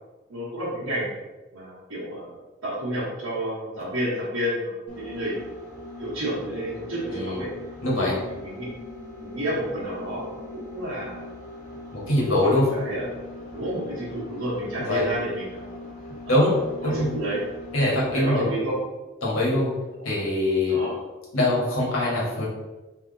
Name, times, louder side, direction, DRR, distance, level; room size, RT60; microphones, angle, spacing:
voice 1, 0.3-1.1 1.5-2.3 2.6-5.4 6.0-7.5 8.3-8.6 9.2-11.2 12.3-13.1 13.5-15.8 16.2-17.4 18.1-18.7 20.0-20.1 20.7-20.9, right 1 dB, 85° right, -10 dB, 1.3 m, -30 dB
sound 1, 4.9-18.4, left 2 dB, 35° left, 1.1 m, -41 dB
voice 2, 7.8-8.2 11.9-12.6 14.8-15.0 16.3-17.1 17.7-18.4 19.2-19.7 20.0-20.8 21.3-22.5, left 1 dB, 90° left, -5 dB, 1.4 m, -23 dB
3.5 x 2.9 x 3.9 m, 1.1 s
head